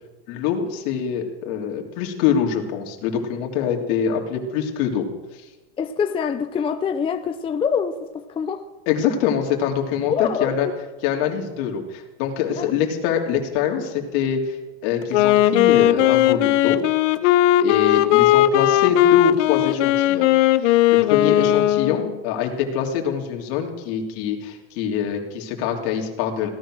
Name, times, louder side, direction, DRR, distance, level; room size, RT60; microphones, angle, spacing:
voice 1, 0.3-5.0 8.9-10.7 11.0-14.6 14.8-16.8 17.2-17.3 17.6-20.3 20.6-26.5, left 8 dB, 60° left, 2 dB, 3.2 m, -24 dB
voice 2, 5.8-8.6 10.1-10.7 12.6-12.7 21.2-21.4, left 6 dB, 15° left, 7 dB, 0.5 m, -25 dB
Wind instrument woodwind instrument, 15.0-22.2, left 13 dB, 90° left, 1.0 m, -17 dB
17.0 x 13.5 x 6.3 m, 1.1 s
supercardioid pair, 150°, 35 cm